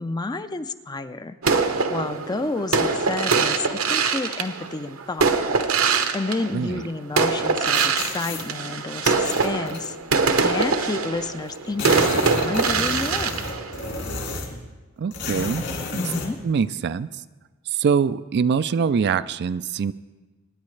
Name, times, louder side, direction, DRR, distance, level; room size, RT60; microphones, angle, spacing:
voice 1, 0.0-1.4 1.9-5.4 6.1-10.0 10.4-13.4 16.0-16.4, left 3 dB, 20° left, 11 dB, 0.4 m, -30 dB
sound 1, 1.4-6.8 7.2-14.3, right 4 dB, 75° right, 0.9 m, -23 dB
sound 2, 7.7-8.5 9.0-9.9 10.8-10.9 11.1-11.2 11.5-14.6 15.1-16.3, left 3 dB, 60° left, 2.5 m, -31 dB
voice 2, 15.0-15.6 15.9-16.0 16.4-17.1 17.7-19.9, right 6 dB, 50° right, 14 dB, 0.3 m, -23 dB
25.0 x 9.9 x 3.2 m, 1.3 s
head